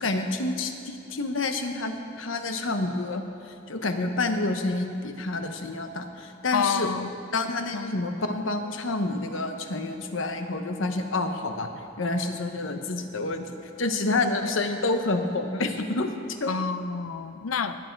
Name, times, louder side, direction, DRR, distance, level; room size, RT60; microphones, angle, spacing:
voice 1, 0.0-3.3 3.7-6.9 7.3-11.7 12.0-16.1 16.4-16.5, left 2 dB, 70° left, 6 dB, 1.0 m, -28 dB
voice 2, 6.5-7.1 7.7-7.9 16.5-17.8, left 5 dB, 90° left, 11 dB, 0.6 m, -28 dB
20.0 x 9.0 x 4.6 m, 2.7 s
head